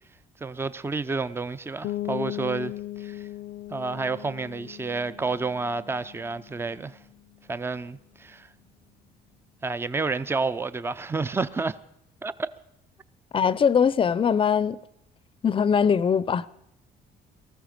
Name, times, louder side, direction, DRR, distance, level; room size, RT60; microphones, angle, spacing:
voice 1, 0.4-3.3 3.7-7.0 7.5-8.5 9.6-11.8 12.2-12.5, right 3 dB, 15° right, 0.5 m, -30 dB
sound 1, 1.8-7.4, left 14 dB, 75° left, 0.6 m, -38 dB
voice 2, 13.3-14.8 15.4-16.5, left 7 dB, 30° left, 0.6 m, -21 dB
18.5 x 14.0 x 5.2 m
cardioid pair, 110°, 17 cm